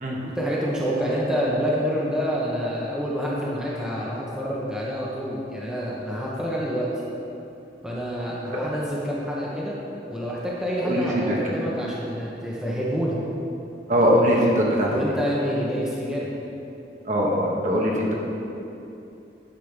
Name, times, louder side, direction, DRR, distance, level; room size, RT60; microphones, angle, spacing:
voice 1, 0.2-6.9 7.8-9.8 10.1-13.2 14.9-16.3, equal, 5° right, -6 dB, 1.1 m, -27 dB
voice 2, 10.8-11.4 13.9-14.9 17.1-18.1, equal, 40° right, -3 dB, 1.4 m, -21 dB
9.7 x 5.3 x 6.7 m, 2.9 s
head